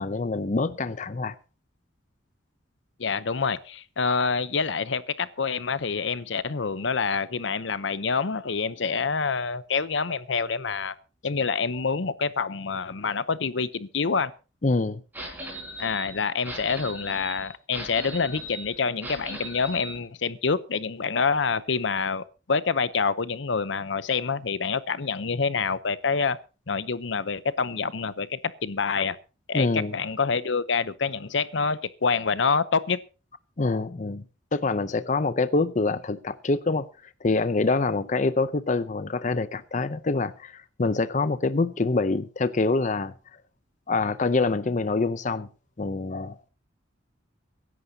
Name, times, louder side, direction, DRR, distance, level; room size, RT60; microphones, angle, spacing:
voice 1, 0.0-1.3 14.6-15.0 29.5-30.0 33.6-34.2 34.5-36.9 37.2-43.1 43.9-45.5 45.8-46.5, left 3 dB, 40° left, 0.6 m, -25 dB
voice 2, 3.0-10.9 11.2-14.3 15.8-26.4 26.7-29.2 29.5-33.0, left 5 dB, 75° left, 0.8 m, -27 dB
sound 1, 15.1-20.0, right 1 dB, 10° right, 5.1 m, -38 dB
24.0 x 11.0 x 2.8 m
head